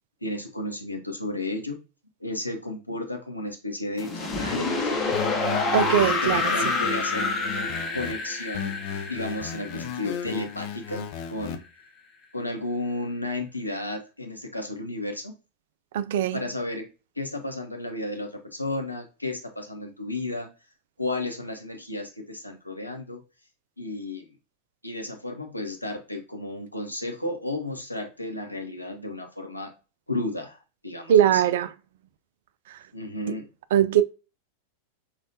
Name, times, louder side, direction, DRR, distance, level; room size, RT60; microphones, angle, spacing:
voice 1, 0.2-1.8 2.2-5.3 6.2-8.7 9.1-11.6 12.3-15.3 16.3-16.9 17.2-20.5 21.0-23.2 23.8-24.3 24.8-29.7 30.1-30.6 30.8-31.4 32.9-33.5, left 2 dB, 85° left, 0.7 m, -33 dB
sound 1, 4.0-10.9, left 3 dB, 25° left, 0.8 m, -28 dB
sound 2, 5.1-8.1 8.5-11.6, left 9 dB, 45° left, 0.5 m, -35 dB
voice 2, 5.7-6.5 15.9-16.4 31.1-31.7 33.7-34.0, right 10 dB, 55° right, 0.3 m, -20 dB
5.2 x 2.4 x 2.6 m
figure-of-eight pair, 90°, 0 cm